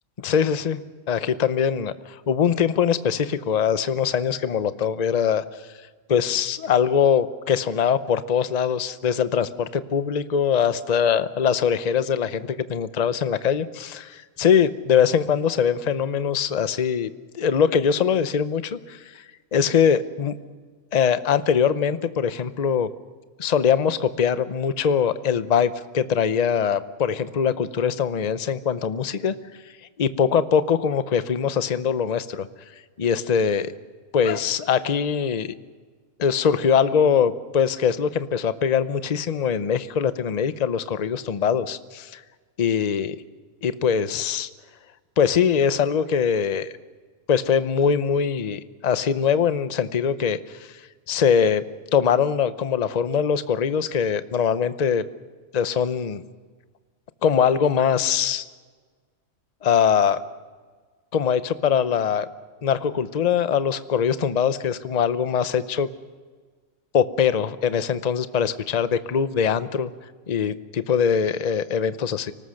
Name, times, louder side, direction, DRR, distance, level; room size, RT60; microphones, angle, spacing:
voice 1, 0.2-0.8 1.1-5.4 6.1-19.2 19.5-20.4 20.9-22.9 23.4-29.3 30.0-32.5 33.0-33.7 34.1-35.5 36.2-42.2 42.6-43.2 43.6-44.5 45.2-46.7 47.3-50.8 51.1-51.6 51.9-55.0 55.5-56.2 57.2-58.4 59.6-60.2 61.1-62.3 62.6-65.9 66.9-69.9 70.3-72.3, left 7 dB, 35° left, 12 dB, 0.8 m, -22 dB
25.0 x 19.0 x 6.5 m, 1.5 s
omnidirectional pair, 1.4 m